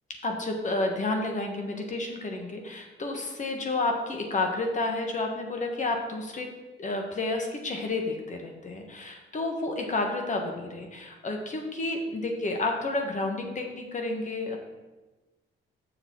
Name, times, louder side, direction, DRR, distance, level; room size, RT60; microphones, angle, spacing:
voice 1, 0.2-6.5 6.8-14.6, left 2 dB, 40° left, 3 dB, 1.4 m, -30 dB
6.9 x 6.6 x 4.6 m, 1.2 s
cardioid pair, 90°, 20 cm